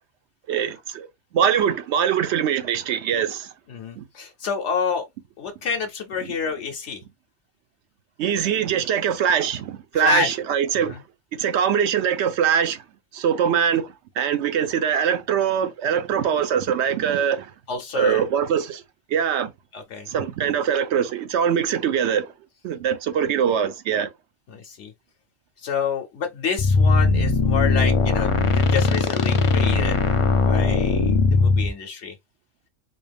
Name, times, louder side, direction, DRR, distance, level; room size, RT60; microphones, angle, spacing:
voice 1, 0.5-1.1 1.3-3.5 4.0-4.1 8.2-11.0 11.3-12.8 13.1-17.5 17.9-18.8 19.1-19.5 20.1-22.3 22.6-24.1, right 8 dB, 70° right, 0.8 m, -22 dB
voice 2, 3.7-5.0 5.4-7.0 10.0-10.3 10.9-11.0 17.7-18.2 19.7-20.1 24.5-24.9 25.6-30.0 30.4-32.1, left 6 dB, 70° left, 0.9 m, -28 dB
sound 1, 26.6-31.7, left 3 dB, 55° left, 0.3 m, -19 dB
4.1 x 2.3 x 3.3 m
omnidirectional pair, 1.3 m